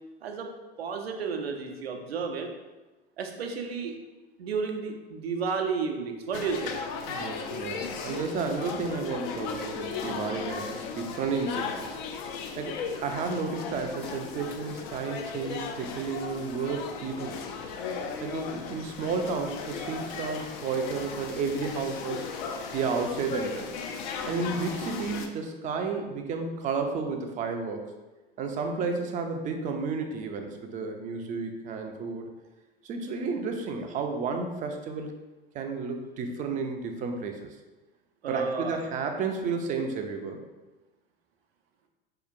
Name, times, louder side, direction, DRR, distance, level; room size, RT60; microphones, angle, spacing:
voice 1, 0.8-2.5 3.2-3.9 4.4-6.8 38.2-38.8, right 5 dB, 80° right, 4 dB, 0.6 m, -32 dB
sound 1, 6.3-25.3, left 5 dB, 50° left, 0.5 m, -36 dB
voice 2, 7.1-12.0 12.6-17.4 18.2-22.3 22.7-23.7 24.3-27.9 28.4-32.3 32.8-35.1 35.5-37.5 38.3-40.4, right 4 dB, 25° right, 4 dB, 0.4 m, -32 dB
4.3 x 2.8 x 2.5 m, 1.2 s
figure-of-eight pair, 85°, 30 cm